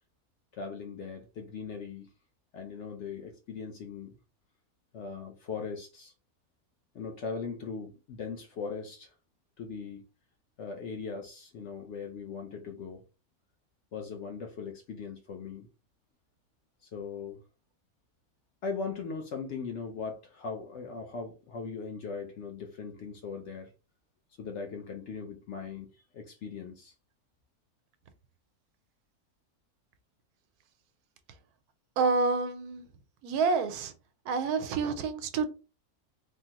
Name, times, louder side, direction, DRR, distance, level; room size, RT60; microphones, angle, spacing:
voice 1, 0.5-2.1 2.5-4.1 4.9-6.1 6.9-9.1 9.6-10.0 10.6-13.0 13.9-15.7 16.8-17.4 18.6-23.7 24.4-26.9, left 5 dB, 65° left, 0.7 m, -39 dB
voice 2, 32.0-32.8 33.2-33.9 34.3-35.5, right 4 dB, 90° right, 1.1 m, -28 dB
3.5 x 2.0 x 2.8 m
omnidirectional pair, 1.6 m